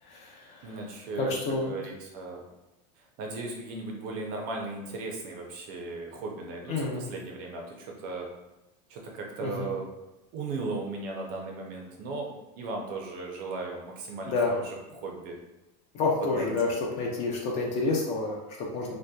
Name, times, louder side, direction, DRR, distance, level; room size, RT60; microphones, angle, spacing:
voice 1, 0.0-0.8 1.2-1.8 6.7-7.1 9.4-9.7 14.3-14.6 15.9-19.0, left 3 dB, 35° left, -1 dB, 0.4 m, -29 dB
voice 2, 0.6-2.4 3.2-8.3 8.9-9.9 10.3-15.4 16.3-16.8, right 3 dB, 45° right, 1 dB, 0.5 m, -37 dB
2.7 x 2.1 x 2.2 m, 0.98 s
supercardioid pair, 155°, 21 cm